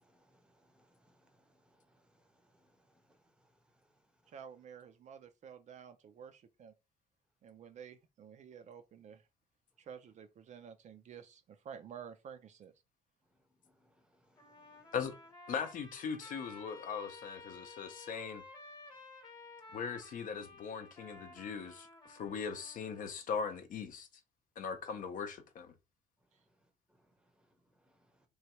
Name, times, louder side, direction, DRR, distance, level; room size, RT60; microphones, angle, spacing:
voice 1, 0.0-3.2 13.8-13.9 14.3-14.8, equal, 5° right, 0.7 m, -71 dB
voice 2, 4.3-6.7 7.4-9.3 9.8-12.7 26.3-26.4, right 7 dB, 45° right, 0.4 m, -51 dB
Trumpet, 14.4-23.2, left 2 dB, 25° left, 1.0 m, -54 dB
voice 3, 15.5-18.4 19.7-24.1 24.6-25.7, left 6 dB, 55° left, 0.6 m, -40 dB
3.1 x 2.2 x 2.9 m
cardioid pair, 110°, 17 cm